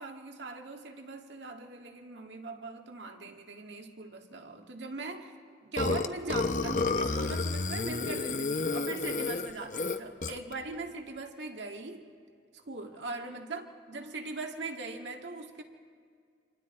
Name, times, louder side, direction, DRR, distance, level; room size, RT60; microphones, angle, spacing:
voice 1, 0.0-5.3 5.6-12.1 12.5-15.6, right 3 dB, 90° right, 3 dB, 1.9 m, -40 dB
Burping eructation, 5.8-10.5, left 3 dB, 45° left, 0.7 m, -31 dB
29.5 x 26.0 x 4.3 m, 2.1 s
head